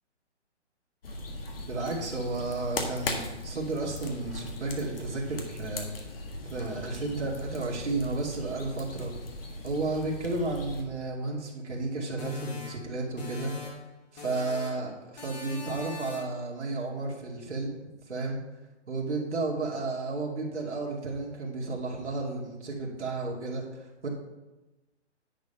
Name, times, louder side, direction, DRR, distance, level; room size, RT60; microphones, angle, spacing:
sound 1, 1.0-10.8, left 2 dB, 55° left, 1.7 m, -38 dB
voice 1, 1.6-5.9 6.5-9.1 9.6-13.5 14.1-17.7 18.1-18.4 18.9-24.1, right 3 dB, 75° right, -3 dB, 2.5 m, -32 dB
sound 2, 12.2-13.9 14.2-14.9 15.2-16.4, left 5 dB, 35° left, 2.2 m, -41 dB
10.5 x 5.4 x 5.6 m, 1.1 s
hypercardioid pair, 170°, 35 cm